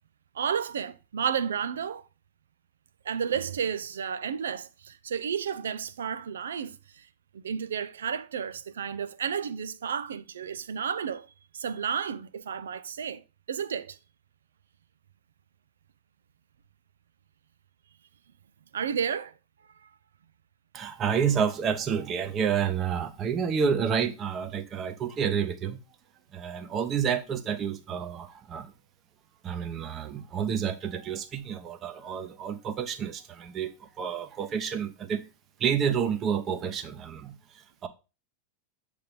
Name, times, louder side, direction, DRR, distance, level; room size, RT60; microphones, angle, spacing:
voice 1, 0.3-2.1 3.0-7.1 7.3-11.3 11.5-13.2 13.5-14.0 18.7-19.3 19.8-19.9, right 7 dB, 65° right, 0.5 m, -32 dB
voice 2, 20.7-25.8 26.3-28.7 29.4-33.7 34.0-35.2 35.6-37.3 37.8-37.9, right 7 dB, 30° right, 0.9 m, -29 dB
7.8 x 3.5 x 5.1 m
figure-of-eight pair, 90°, 0 cm